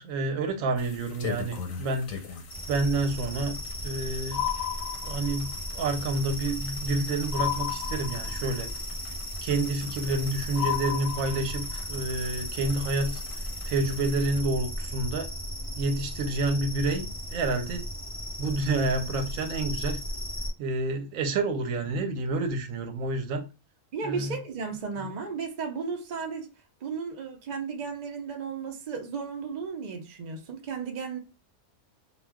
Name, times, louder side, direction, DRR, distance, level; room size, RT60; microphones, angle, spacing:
voice 1, 0.0-2.3 2.7-3.6 3.8-4.5 5.0-9.1 9.4-15.3 15.8-17.9 18.4-20.0 20.6-23.5 24.0-24.4, right 2 dB, 85° right, 1.0 m, -29 dB
sound 1, 0.8-14.4, left 6 dB, 90° left, 1.1 m, -43 dB
sound 2, 2.5-20.5, equal, 20° left, 0.6 m, -36 dB
sound 3, 4.3-5.5 7.3-8.6 10.5-11.8, left 11 dB, 55° left, 0.8 m, -32 dB
voice 2, 23.9-26.5 26.8-31.2, right 5 dB, 50° right, 0.5 m, -34 dB
2.4 x 2.2 x 3.4 m
omnidirectional pair, 1.4 m